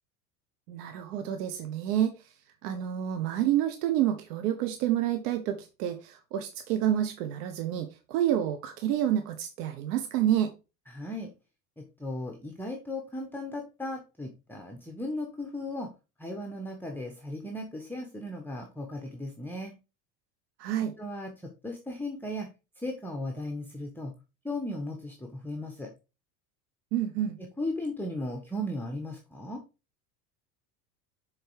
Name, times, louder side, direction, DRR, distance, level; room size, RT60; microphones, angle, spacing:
voice 1, 0.7-2.1 2.6-10.5 20.6-20.9 26.9-27.4, right 11 dB, 65° right, 7 dB, 1.1 m, -28 dB
voice 2, 10.9-11.3 11.8-15.9 16.2-19.7 21.0-22.5 22.8-24.1 24.4-25.9 27.6-29.6, left 1 dB, 5° left, 2 dB, 1.2 m, -36 dB
6.6 x 4.5 x 4.7 m, 0.29 s
hypercardioid pair, 80°, 50 cm